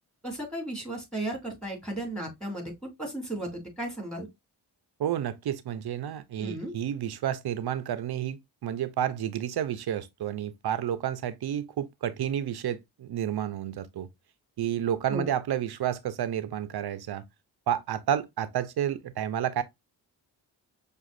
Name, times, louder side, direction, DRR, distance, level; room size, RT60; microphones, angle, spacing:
voice 1, 0.2-4.3 6.4-6.7 15.1-15.3, right 1 dB, ahead, 2.8 m, -35 dB
voice 2, 5.0-14.1 14.6-17.2 17.7-19.6, right 10 dB, 60° right, 0.7 m, -30 dB
5.9 x 2.5 x 2.5 m
supercardioid pair, 50°, 43 cm